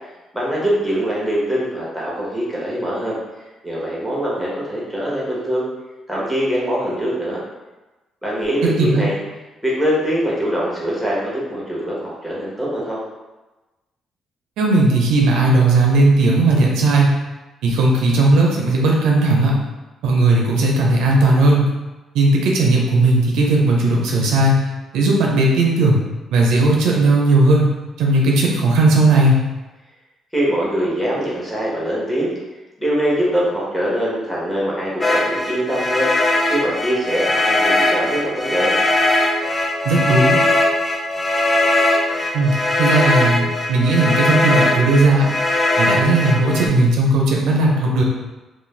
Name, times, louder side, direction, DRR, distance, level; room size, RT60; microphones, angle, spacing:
voice 1, 0.3-3.2 3.6-5.7 6.1-7.4 8.2-9.2 9.6-13.0 30.3-32.3 32.8-36.1 36.5-38.7, equal, ahead, -6 dB, 0.9 m, -22 dB
voice 2, 14.6-17.1 17.6-19.5 20.0-21.7 22.1-24.6 24.9-26.0 26.3-27.7 28.0-29.4 39.8-40.4 42.3-45.3 45.8-48.0, right 2 dB, 90° right, -1 dB, 0.4 m, -16 dB
sound 1, 35.0-46.7, left 2 dB, 25° left, 0.3 m, -19 dB
2.4 x 2.1 x 3.1 m, 1.1 s
cardioid pair, 90°, 0 cm